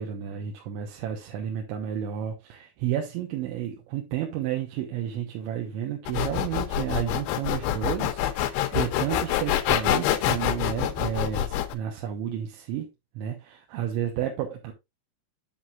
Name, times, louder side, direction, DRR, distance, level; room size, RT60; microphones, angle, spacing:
voice 1, 0.0-12.9 13.2-14.7, right 10 dB, 80° right, 3.4 m, -31 dB
sound 1, 6.1-11.7, left 12 dB, 80° left, 2.7 m, -26 dB
8.1 x 7.4 x 2.4 m
omnidirectional pair, 5.3 m